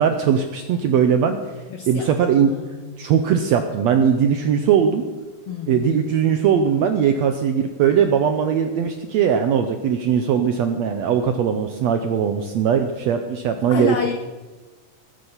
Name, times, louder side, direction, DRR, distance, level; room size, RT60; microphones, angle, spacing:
voice 1, 0.0-1.4 1.9-2.5 3.0-5.0 5.7-14.1, right 7 dB, 80° right, 7 dB, 1.6 m, -19 dB
voice 2, 1.7-3.1 5.5-6.0 13.7-14.1, left 7 dB, 80° left, 5 dB, 1.3 m, -30 dB
20.5 x 8.9 x 5.6 m, 1.3 s
omnidirectional pair, 3.9 m